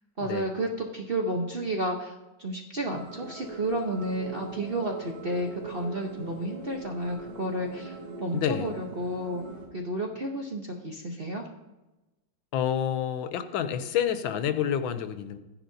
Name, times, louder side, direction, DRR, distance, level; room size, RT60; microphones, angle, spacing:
voice 1, 0.2-2.1 2.4-9.4 9.7-11.4, right 1 dB, 45° right, 0 dB, 0.8 m, -31 dB
sound 1, 2.9-9.7, right 3 dB, 75° right, 2.8 m, -41 dB
voice 2, 8.3-8.7 12.5-15.4, left 9 dB, 80° left, 10 dB, 1.4 m, -28 dB
15.5 x 10.0 x 2.7 m, 1.0 s
omnidirectional pair, 2.2 m